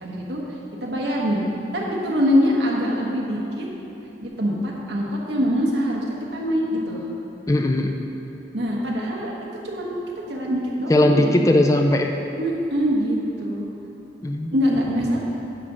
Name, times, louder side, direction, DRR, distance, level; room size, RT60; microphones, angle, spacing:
voice 1, 0.0-0.4 0.8-1.4 1.7-3.7 4.2-6.0 6.3-7.0 8.5-9.3 9.6-11.3 12.4-13.6 14.5-15.2, equal, 75° right, -2 dB, 1.2 m, -23 dB
voice 2, 7.5-8.0 10.9-12.1 14.2-14.5, left 1 dB, 20° left, 4 dB, 0.3 m, -18 dB
9.7 x 3.8 x 6.2 m, 2.9 s
head